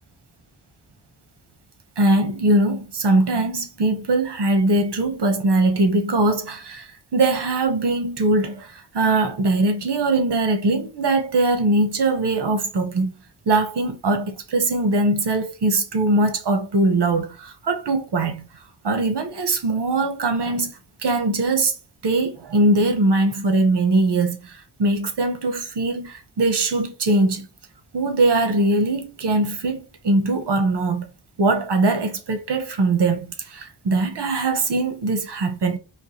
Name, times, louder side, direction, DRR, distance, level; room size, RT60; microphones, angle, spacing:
voice 1, 2.0-6.9 7.1-13.1 13.5-18.5 18.8-20.8 21.0-21.7 22.0-27.5 27.9-31.1 31.4-35.8, right 2 dB, 75° right, 1.1 m, -21 dB
4.6 x 3.1 x 3.2 m
wide cardioid pair, 165°, 41 cm